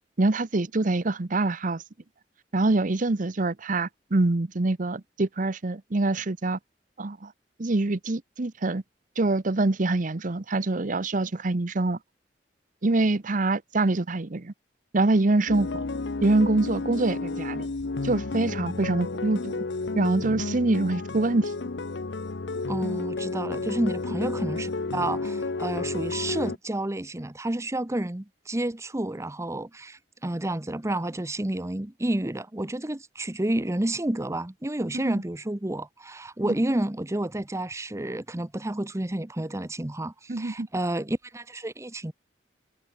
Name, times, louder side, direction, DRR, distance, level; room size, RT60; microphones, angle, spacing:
voice 1, 0.2-1.8 2.5-6.6 7.0-7.3 7.6-8.8 9.2-12.0 12.8-14.5 14.9-15.9 16.2-17.7 18.0-19.6 19.9-21.5 34.9-35.2 36.5-36.6 40.3-40.7, right 2 dB, 50° right, 0.9 m, -25 dB
sound 1, 15.5-26.6, left 3 dB, 80° left, 0.8 m, -31 dB
voice 2, 22.7-42.1, right 1 dB, 15° right, 0.9 m, -30 dB
head